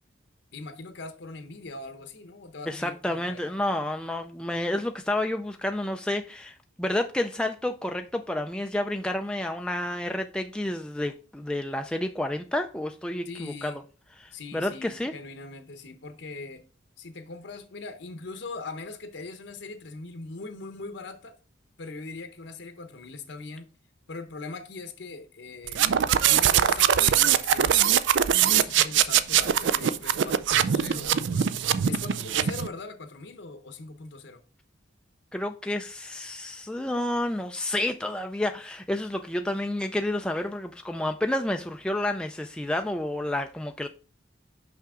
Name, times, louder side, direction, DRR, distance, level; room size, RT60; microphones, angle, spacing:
voice 1, 0.5-3.6 13.3-13.8 14.3-16.6 17.0-21.4 21.8-23.7 24.1-27.8 28.3-34.4, left 3 dB, 65° left, 0.8 m, -41 dB
voice 2, 2.7-13.8 14.2-15.1 35.3-43.9, left 1 dB, 5° left, 0.3 m, -30 dB
sound 1, 25.7-32.7, right 9 dB, 65° right, 0.4 m, -22 dB
5.9 x 5.7 x 3.6 m
head